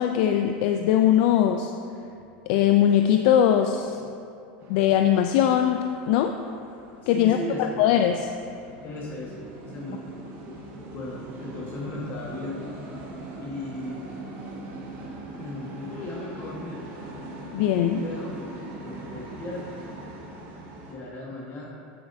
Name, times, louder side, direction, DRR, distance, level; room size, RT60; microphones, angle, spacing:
voice 1, 0.0-1.7 2.5-4.0 4.7-6.3 7.1-8.2 17.5-18.0, left 10 dB, 65° left, 6 dB, 0.4 m, -21 dB
sound 1, 4.6-21.0, right 2 dB, 45° right, 1.5 m, -41 dB
voice 2, 7.0-7.8 8.8-10.1 10.9-12.7 13.4-14.1 15.4-16.8 18.0-18.4 18.7-19.6 20.9-21.7, left 2 dB, 35° left, -4 dB, 1.4 m, -36 dB
9.4 x 7.7 x 2.7 m, 2.5 s
supercardioid pair, 125°, 5 cm